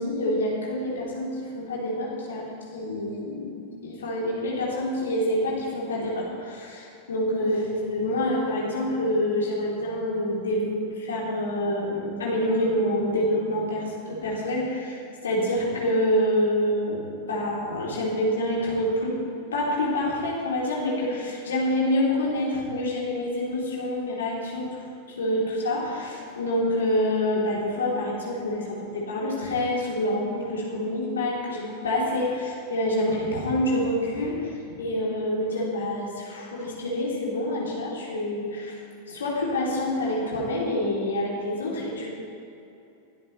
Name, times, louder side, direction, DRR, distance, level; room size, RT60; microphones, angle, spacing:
voice 1, 0.0-19.2 19.5-24.8 25.1-38.8 39.1-42.1, left 1 dB, 65° left, -4 dB, 3.4 m, -27 dB
21.5 x 13.5 x 3.3 m, 2.7 s
figure-of-eight pair, 90°, 0 cm